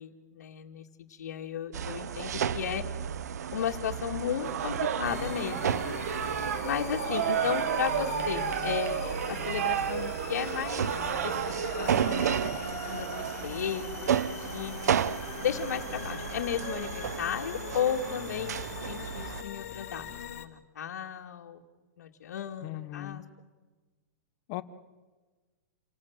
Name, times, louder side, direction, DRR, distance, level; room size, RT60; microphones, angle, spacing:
voice 1, 0.0-2.8 3.5-5.8 6.6-10.9 11.2-12.5 12.9-14.1 14.4-14.8 15.4-20.1 20.3-21.6 22.0-23.2, left 9 dB, 85° left, 1 dB, 2.3 m, -34 dB
sound 1, 1.7-19.4, right 8 dB, 85° right, 1.0 m, -34 dB
sound 2, 4.4-13.5, right 8 dB, 65° right, 1.5 m, -33 dB
sound 3, 5.0-20.5, left 9 dB, 60° left, 2.4 m, -42 dB
voice 2, 22.6-23.2 24.5-24.6, left 16 dB, 30° left, 13 dB, 1.1 m, -37 dB
29.0 x 18.5 x 7.3 m, 1.3 s
supercardioid pair, 170°, 9 cm